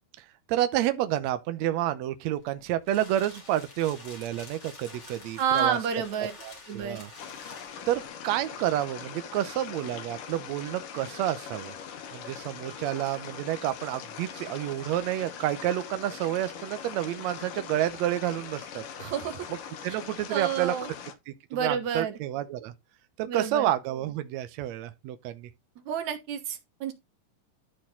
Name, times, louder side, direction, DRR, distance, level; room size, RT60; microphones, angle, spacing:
voice 1, 0.5-5.8 6.4-7.1 7.9-11.7 12.1-18.8 19.8-20.7 21.3-22.7 23.2-25.5, right 13 dB, 80° right, 1.5 m, -29 dB
sound 1, 2.4-8.1, left 3 dB, 40° left, 3.5 m, -48 dB
voice 2, 5.4-6.3 6.7-7.0 19.0-19.5 19.9-20.0 20.3-20.9 21.5-22.2 23.3-23.7 25.9-26.9, right 7 dB, 60° right, 2.5 m, -29 dB
sound 2, 7.2-21.1, left 8 dB, 70° left, 2.8 m, -42 dB
12.5 x 4.4 x 4.3 m
omnidirectional pair, 4.0 m